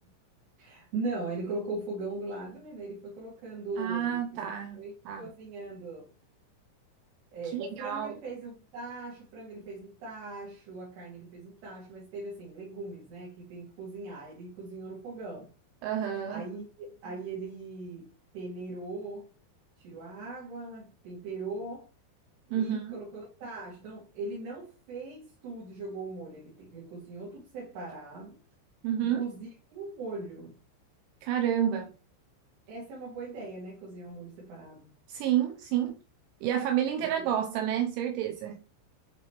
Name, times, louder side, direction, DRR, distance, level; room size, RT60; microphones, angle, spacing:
voice 1, 0.6-6.1 7.3-15.5 16.3-19.3 19.8-21.9 22.5-28.4 29.0-30.6 32.7-34.9 37.2-37.3, right 3 dB, 65° right, 3.7 m, -40 dB
voice 2, 3.8-4.8 5.1-5.3 7.5-8.2 15.8-16.5 22.5-23.0 28.8-29.3 31.2-31.9 35.1-36.0 36.4-38.6, right 10 dB, 80° right, 2.9 m, -29 dB
9.3 x 4.0 x 3.0 m
omnidirectional pair, 5.7 m